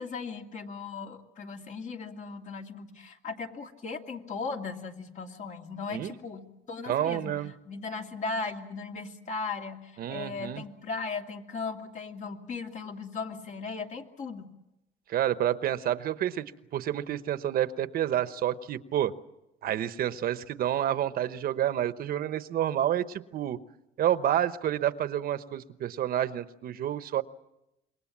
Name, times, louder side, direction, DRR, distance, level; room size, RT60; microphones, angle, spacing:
voice 1, 0.0-7.3 7.6-14.5, left 4 dB, 45° left, 4 dB, 2.5 m, -37 dB
voice 2, 6.9-7.5 10.0-10.6 15.1-19.1 19.6-23.6 24.0-27.2, right 11 dB, 60° right, 13 dB, 1.0 m, -29 dB
27.0 x 22.5 x 7.4 m, 0.89 s
cardioid pair, 110°, 17 cm